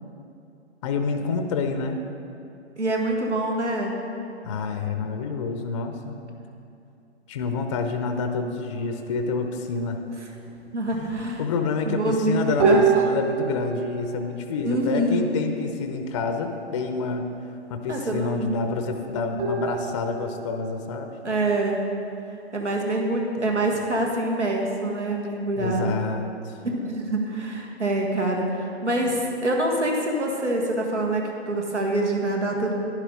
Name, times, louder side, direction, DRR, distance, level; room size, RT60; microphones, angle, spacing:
voice 1, 0.8-2.0 4.4-6.2 7.3-10.0 11.0-11.1 11.4-17.3 17.7-21.1 25.6-26.3, left 4 dB, 30° left, 6 dB, 0.6 m, -28 dB
voice 2, 2.8-4.0 10.7-11.4 11.9-12.8 14.6-15.3 17.9-18.6 21.2-21.8 22.5-25.9 26.6-32.7, right 2 dB, 85° right, 0 dB, 1.6 m, -25 dB
sound 1, 8.7-9.7 10.3-10.4 10.6-10.7 10.9-11.5 12.6-15.5 19.4-21.9, right 4 dB, 35° right, 2.1 m, -27 dB
11.0 x 10.5 x 3.8 m, 2.7 s
figure-of-eight pair, 130°, 34 cm